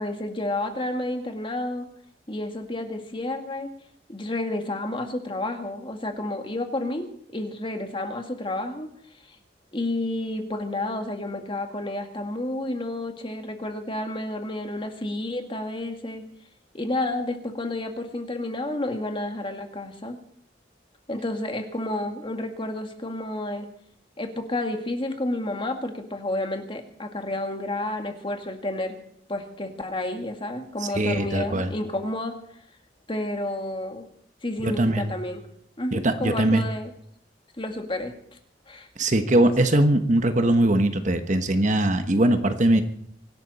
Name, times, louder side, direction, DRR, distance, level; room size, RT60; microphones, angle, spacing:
voice 1, 0.0-1.9 2.3-3.7 4.1-7.1 7.3-8.9 9.7-16.2 16.7-20.2 21.1-23.7 24.2-28.9 29.3-32.3 33.1-34.1 34.4-35.4 35.8-36.9 37.6-38.1 38.7-38.9, left 1 dB, 30° left, 5 dB, 2.0 m, -30 dB
voice 2, 30.9-31.7 34.6-35.1 35.9-36.6 39.0-42.8, right 1 dB, 45° right, 8 dB, 1.2 m, -21 dB
24.5 x 12.0 x 4.2 m, 0.67 s
head